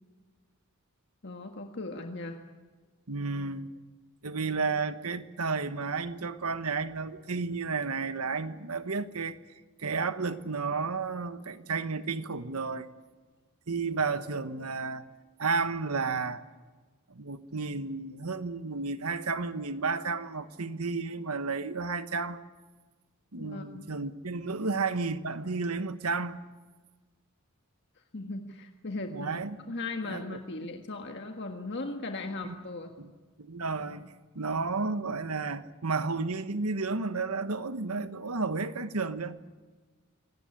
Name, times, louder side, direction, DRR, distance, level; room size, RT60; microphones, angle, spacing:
voice 1, 1.2-2.4 23.4-23.8 28.1-29.4 29.7-32.9, left 2 dB, 55° left, 1.7 m, -38 dB
voice 2, 3.1-3.7 4.2-9.4 9.8-12.9 13.7-15.0 15.4-16.4 17.1-22.4 23.3-26.4 29.1-29.6 30.0-30.4 32.4-32.5 33.0-33.1 33.4-39.4, right 4 dB, 85° right, 1.3 m, -32 dB
25.0 x 18.0 x 9.9 m
head